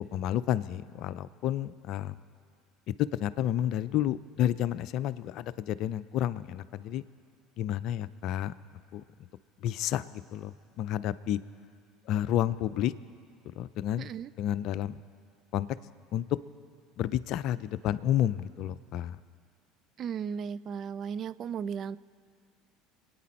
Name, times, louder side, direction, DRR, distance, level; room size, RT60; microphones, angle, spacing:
voice 1, 0.1-2.1 3.0-7.0 7.6-8.5 8.9-9.0 9.6-11.4 12.1-12.9 13.6-14.1 14.4-15.0 15.5-15.7 16.1-16.2 17.0-19.2, left 11 dB, 55° left, 16 dB, 0.5 m, -30 dB
voice 2, 14.0-14.3 20.0-22.0, right 7 dB, 45° right, 16 dB, 0.4 m, -35 dB
27.5 x 9.4 x 4.4 m, 2.3 s
figure-of-eight pair, 65°, 0 cm